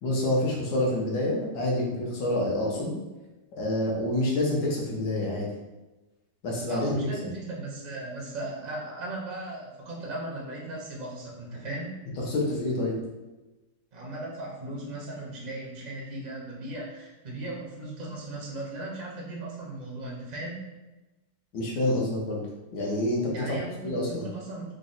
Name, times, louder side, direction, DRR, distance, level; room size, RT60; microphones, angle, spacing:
voice 1, 0.0-2.9 3.5-5.5 6.4-7.3 12.2-13.0 21.5-22.5 22.7-23.6 23.8-24.2, left 1 dB, 75° left, -2 dB, 1.5 m, -27 dB
voice 2, 6.7-12.0 13.9-20.7 23.3-24.7, right 2 dB, 70° right, -3 dB, 0.4 m, -37 dB
3.9 x 2.1 x 3.8 m, 1.1 s
omnidirectional pair, 1.8 m